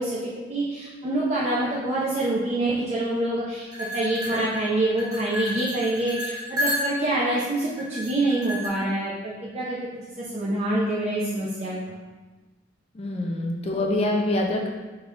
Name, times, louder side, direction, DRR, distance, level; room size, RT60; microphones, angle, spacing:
voice 1, 0.0-9.8 10.2-12.0, right 1 dB, 35° right, -8 dB, 0.5 m, -26 dB
sound 1, 3.7-7.2 7.8-8.7, left 1 dB, 20° right, 0.9 m, -31 dB
voice 2, 12.9-14.7, left 1 dB, 30° left, 0 dB, 0.4 m, -25 dB
3.6 x 3.6 x 3.2 m, 1.3 s
head